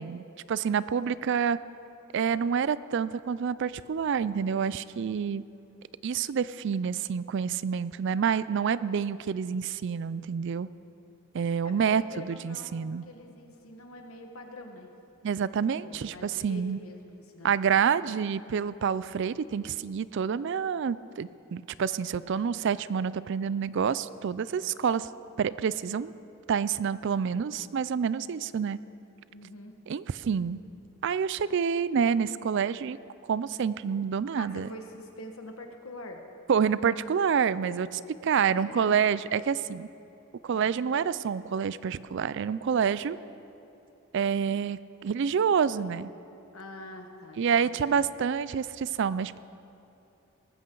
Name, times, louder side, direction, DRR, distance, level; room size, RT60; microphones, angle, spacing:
voice 1, 0.0-1.6 2.1-5.4 6.0-10.7 11.3-13.1 15.2-16.8 17.4-25.1 25.4-26.1 26.5-28.8 29.9-30.6 31.0-33.0 33.3-34.7 36.5-37.9 38.2-39.9 40.4-43.2 44.1-46.1 47.4-49.4, right 7 dB, 55° right, 17 dB, 0.3 m, -28 dB
voice 2, 11.6-14.9 15.8-17.5 29.3-29.7 34.4-36.2 37.6-38.9 40.5-40.8 46.5-48.0, left 1 dB, 85° left, 4 dB, 1.5 m, -45 dB
19.0 x 14.5 x 3.9 m, 2.8 s
head